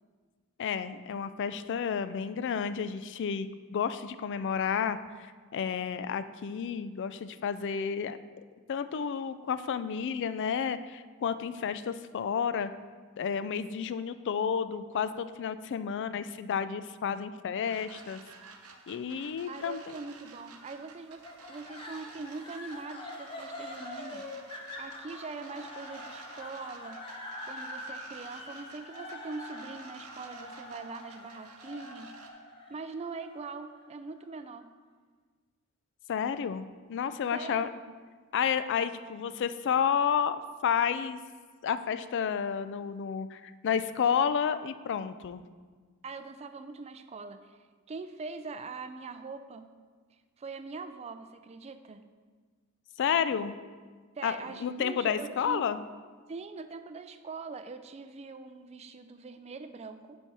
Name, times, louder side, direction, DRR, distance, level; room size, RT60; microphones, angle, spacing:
voice 1, 0.6-8.2 8.7-12.7 13.2-18.2 18.9-20.0 36.1-37.7 38.3-41.2 41.6-45.4 53.0-53.6 54.2-55.8, left 7 dB, 55° left, 13 dB, 0.3 m, -31 dB
sound 1, 17.6-32.3, right 4 dB, 80° right, 0.8 m, -53 dB
voice 2, 19.5-21.2 21.5-24.2 24.5-27.0 27.5-32.1 32.7-34.7 37.3-37.9 46.0-47.6 47.9-49.7 50.4-52.1 54.2-55.7 56.3-60.2, right 4 dB, 30° right, 9 dB, 0.4 m, -42 dB
sound 2, 21.2-34.4, left 1 dB, 25° left, 0.8 m, -45 dB
8.8 x 4.3 x 4.7 m, 1.5 s
head